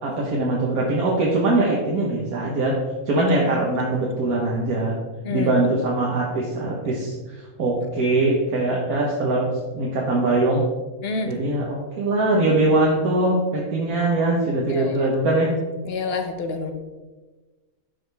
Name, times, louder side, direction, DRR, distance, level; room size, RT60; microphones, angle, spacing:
voice 1, 0.0-2.8 3.1-5.0 5.3-10.6 11.3-15.5, right 2 dB, 85° right, -3 dB, 1.6 m, -22 dB
voice 2, 11.0-11.3 14.7-15.1 15.8-16.7, left 4 dB, 50° left, 6 dB, 1.0 m, -28 dB
11.5 x 5.1 x 3.4 m, 1.2 s
omnidirectional pair, 1.5 m